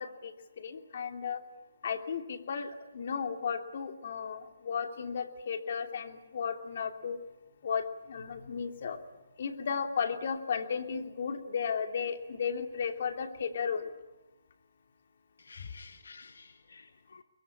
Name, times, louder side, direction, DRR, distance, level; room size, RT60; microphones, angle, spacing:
voice 1, 0.0-1.4 1.8-7.2 7.6-9.0 9.4-13.9 15.6-15.7, left 6 dB, 55° left, 6 dB, 2.8 m, -34 dB
voice 2, 15.4-17.2, left 4 dB, 80° left, 12 dB, 1.1 m, -53 dB
23.0 x 22.5 x 9.8 m, 1.1 s
hypercardioid pair, 150°, 0 cm